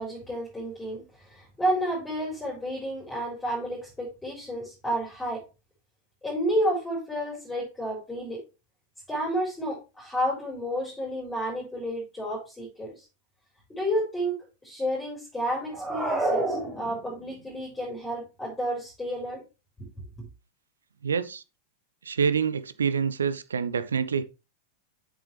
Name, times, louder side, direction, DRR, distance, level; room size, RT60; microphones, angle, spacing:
voice 1, 0.0-5.4 6.2-8.4 9.1-13.0 13.7-19.4 20.2-20.3, equal, 10° left, 4.7 m, -31 dB
sound 1, 15.7-17.3, right 2 dB, 10° right, 3.8 m, -28 dB
voice 2, 21.0-21.4 22.0-24.2, right 6 dB, 70° right, 0.6 m, -26 dB
8.0 x 7.5 x 3.3 m
figure-of-eight pair, 90°, 0 cm